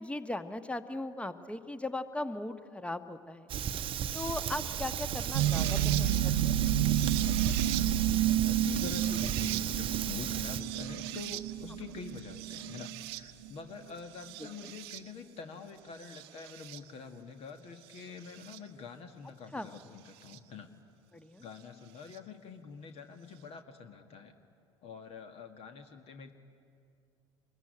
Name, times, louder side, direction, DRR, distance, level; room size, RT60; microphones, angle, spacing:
voice 1, 0.0-3.5 4.1-6.7 14.4-14.7 19.5-19.7 21.1-21.4, left 2 dB, 10° left, 11 dB, 1.3 m, -38 dB
Fire, 3.5-10.6, right 9 dB, 35° right, 0.9 m, -35 dB
sound 1, 5.3-13.5 14.2-15.0 16.1-16.8 18.5-18.6 20.3-20.4, right 11 dB, 60° right, 0.9 m, -30 dB
voice 2, 5.6-6.3 7.8-7.9 8.4-20.7 21.4-24.3 24.8-26.3, left 5 dB, 45° left, 7 dB, 1.8 m, -46 dB
25.5 x 22.0 x 9.8 m, 2.4 s
figure-of-eight pair, 70°, 15 cm